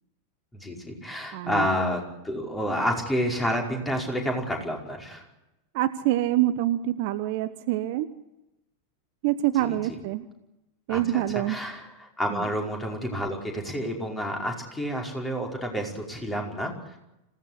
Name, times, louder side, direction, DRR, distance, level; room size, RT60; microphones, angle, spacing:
voice 1, 0.5-5.2 9.5-10.0 10.9-17.0, equal, 10° left, 1 dB, 5.4 m, -30 dB
voice 2, 1.3-1.7 5.7-8.1 9.2-10.2 10.9-11.6 12.3-12.4, right 14 dB, 50° right, 12 dB, 1.1 m, -26 dB
26.5 x 17.0 x 8.3 m, 0.93 s
figure-of-eight pair, 90°, 0 cm